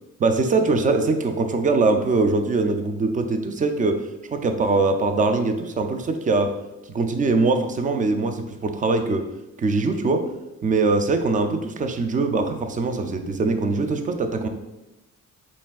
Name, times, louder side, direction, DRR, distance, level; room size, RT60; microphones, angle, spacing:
voice 1, 0.2-4.0 4.3-6.5 6.9-9.2 9.6-10.2 10.6-14.5, right 3 dB, 25° right, 7 dB, 0.4 m, -22 dB
4.1 x 3.4 x 2.4 m, 0.97 s
cardioid pair, 90°, 30 cm